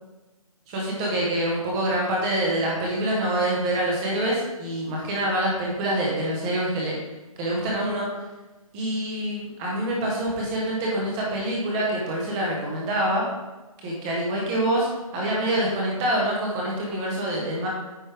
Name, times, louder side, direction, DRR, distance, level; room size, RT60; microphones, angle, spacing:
voice 1, 0.7-7.0 7.4-8.1 8.7-13.2 13.8-14.9 15.1-17.7, right 1 dB, 10° right, -3 dB, 0.9 m, -26 dB
9.1 x 5.2 x 3.3 m, 1.1 s
hypercardioid pair, 170°, 19 cm